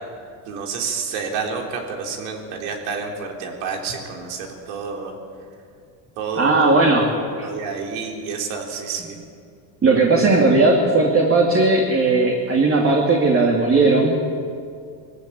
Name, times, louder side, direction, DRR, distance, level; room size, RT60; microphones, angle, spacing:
voice 1, 0.5-5.2 6.2-9.2, right 5 dB, 75° right, 1 dB, 3.9 m, -29 dB
voice 2, 6.4-7.1 7.4-7.5 9.8-14.2, right 3 dB, 25° right, -1 dB, 2.7 m, -17 dB
20.5 x 15.0 x 8.9 m, 2.3 s
supercardioid pair, 110°, 49 cm